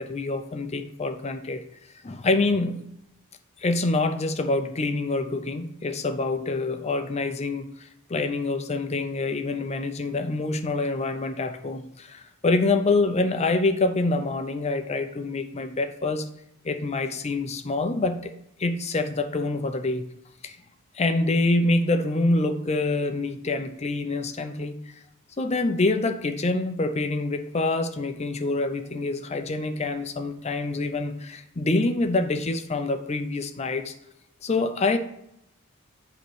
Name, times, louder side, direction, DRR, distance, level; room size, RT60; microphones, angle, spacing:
voice 1, 0.0-1.6 2.0-2.8 3.6-16.2 16.6-18.3 18.6-20.1 20.4-20.6 20.9-24.7 25.4-33.9 34.4-35.0, left 2 dB, 30° left, 8 dB, 0.5 m, -26 dB
7.9 x 3.1 x 6.2 m, 0.78 s
head